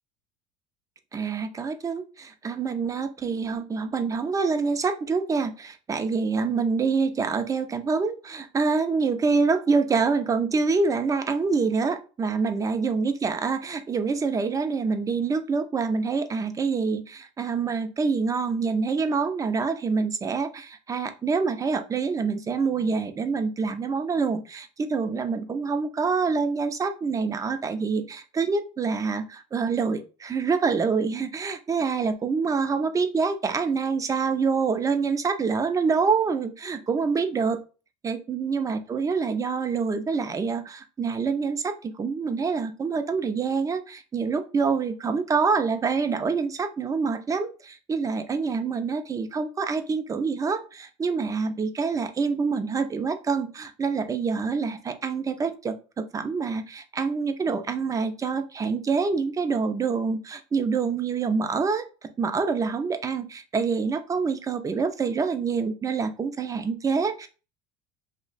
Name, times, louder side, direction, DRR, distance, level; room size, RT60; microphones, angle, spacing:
voice 1, 1.1-37.6 38.0-61.8 62.2-67.3, right 5 dB, 20° right, 8 dB, 0.5 m, -26 dB
2.7 x 2.1 x 4.0 m, 0.34 s
supercardioid pair, 110°, 16 cm